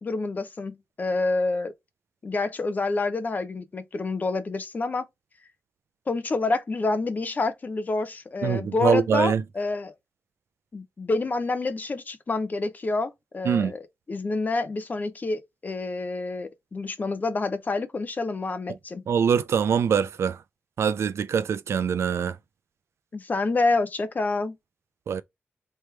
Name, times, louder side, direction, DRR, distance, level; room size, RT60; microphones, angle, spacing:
voice 1, 0.0-1.7 2.2-5.1 6.1-9.9 10.7-13.8 14.1-19.0 23.1-24.6, left 3 dB, 40° left, 0.8 m, -28 dB
voice 2, 8.4-9.4 13.5-13.7 19.1-20.4 20.8-22.4 25.1-25.2, right 7 dB, 85° right, 0.4 m, -23 dB
3.4 x 3.1 x 4.5 m
wide cardioid pair, 110°, 4 cm